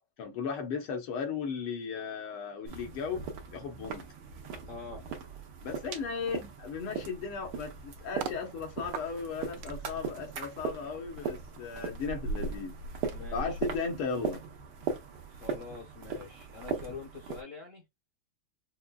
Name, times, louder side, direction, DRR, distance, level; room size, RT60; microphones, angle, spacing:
voice 1, 0.2-4.1 5.6-12.8 13.3-14.4, left 5 dB, 85° left, 1.9 m, -36 dB
sound 1, 2.6-17.4, right 5 dB, 90° right, 1.8 m, -39 dB
voice 2, 4.7-5.0 13.1-13.6 15.3-17.8, left 5 dB, 60° left, 0.8 m, -45 dB
sound 2, 7.1-8.4 8.9-14.5 14.8-15.1, right 3 dB, 75° right, 1.1 m, -41 dB
5.7 x 2.2 x 2.2 m
omnidirectional pair, 2.4 m